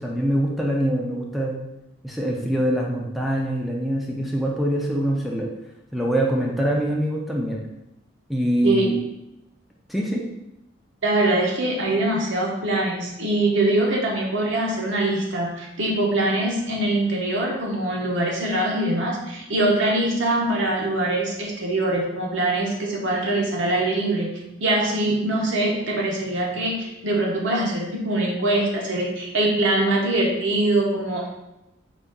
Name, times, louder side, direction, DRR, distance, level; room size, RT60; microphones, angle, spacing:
voice 1, 0.0-1.6 2.0-5.5 5.9-7.6 8.3-8.9 9.9-10.2, right 1 dB, ahead, -2 dB, 0.4 m, -24 dB
voice 2, 11.0-24.3 24.6-31.3, right 1 dB, 65° right, -1 dB, 0.7 m, -23 dB
3.9 x 2.3 x 3.5 m, 0.91 s
head